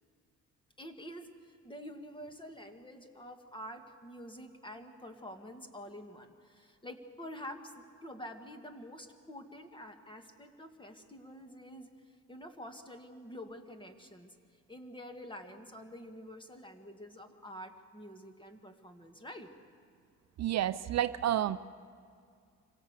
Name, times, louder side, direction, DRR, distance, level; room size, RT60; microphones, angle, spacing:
voice 1, 0.8-14.4 14.7-19.5, equal, 15° left, 6 dB, 2.1 m, -48 dB
voice 2, 20.4-21.6, right 12 dB, 60° right, 13 dB, 0.6 m, -30 dB
26.0 x 17.0 x 8.3 m, 2.3 s
cardioid pair, 90°, 30 cm